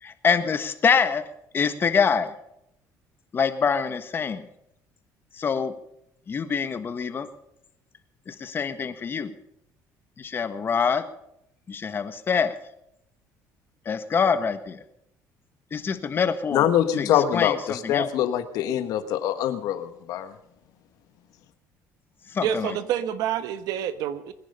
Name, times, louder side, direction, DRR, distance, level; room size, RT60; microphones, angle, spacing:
voice 1, 0.0-1.2 1.5-2.3 3.3-4.5 5.3-5.7 6.3-7.3 8.3-9.3 10.2-11.0 11.7-12.5 13.8-14.8 15.7-16.7 17.0-18.1 22.3-22.8, left 6 dB, 35° left, 9 dB, 1.4 m, -25 dB
voice 2, 16.5-20.3, left 10 dB, 70° left, 10 dB, 1.4 m, -24 dB
voice 3, 22.4-24.3, right 9 dB, 75° right, 12 dB, 1.2 m, -28 dB
21.5 x 10.5 x 5.5 m, 0.76 s
cardioid pair, 120°, 7 cm